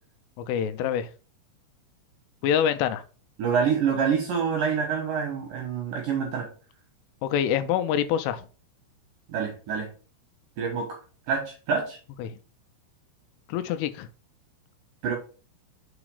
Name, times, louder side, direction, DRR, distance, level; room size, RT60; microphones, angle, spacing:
voice 1, 0.4-1.1 2.4-3.0 7.2-8.4 12.2-12.4 13.5-14.1, left 9 dB, 85° left, 3.1 m, -26 dB
voice 2, 3.4-6.5 9.3-9.9 10.6-11.0 11.3-12.0 15.0-15.1, right 6 dB, 65° right, 2.4 m, -26 dB
6.2 x 4.9 x 4.8 m
omnidirectional pair, 5.7 m